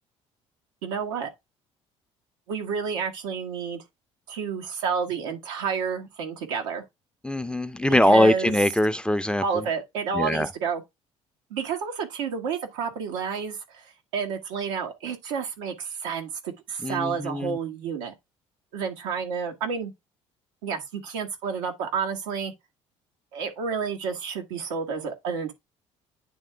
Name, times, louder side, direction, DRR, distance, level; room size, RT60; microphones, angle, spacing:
voice 1, 0.8-1.3 2.5-3.8 4.3-6.8 7.9-8.5 9.4-10.8 11.5-18.1 18.7-19.9 20.6-22.5 23.3-25.5, right 6 dB, 80° right, 1.5 m, -30 dB
voice 2, 7.2-9.4 10.1-10.5 16.8-17.5, left 1 dB, 5° left, 0.6 m, -22 dB
9.4 x 3.6 x 3.3 m
hypercardioid pair, 55°, 15 cm